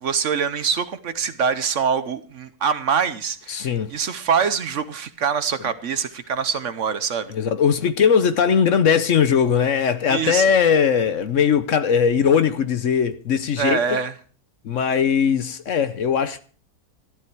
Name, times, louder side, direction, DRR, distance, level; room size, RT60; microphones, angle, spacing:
voice 1, 0.0-7.3 10.1-10.4 13.6-14.1, right 6 dB, 55° right, 1.1 m, -24 dB
voice 2, 3.5-3.9 7.3-14.0 14.6-16.4, left 7 dB, 60° left, 1.1 m, -19 dB
13.0 x 13.0 x 4.5 m
omnidirectional pair, 1.6 m